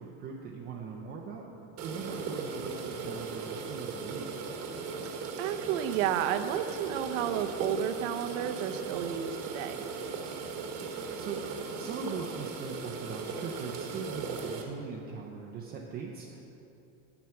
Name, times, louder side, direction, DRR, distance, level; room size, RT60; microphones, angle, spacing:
voice 1, 0.0-1.5 1.8-4.4 11.2-16.4, right 5 dB, 25° right, -1 dB, 0.6 m, -40 dB
sound 1, 1.8-14.6, right 5 dB, 40° right, 1.2 m, -38 dB
voice 2, 5.4-9.8, right 10 dB, 75° right, 9 dB, 0.8 m, -31 dB
9.9 x 7.7 x 5.8 m, 2.9 s
cardioid pair, 165°, 38 cm